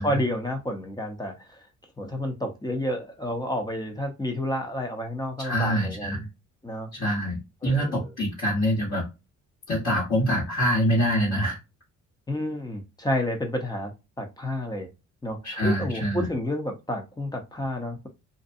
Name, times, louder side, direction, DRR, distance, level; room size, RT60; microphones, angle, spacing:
voice 1, 0.0-1.6 2.0-6.2 6.6-6.9 7.6-8.1 12.3-13.9 14.2-14.9 15.2-18.1, left 1 dB, 15° left, 0.7 m, -30 dB
voice 2, 5.4-6.3 6.9-9.1 9.7-11.6 15.4-16.3, equal, 60° left, 1.3 m, -25 dB
2.6 x 2.2 x 2.6 m
cardioid pair, 90°, 30 cm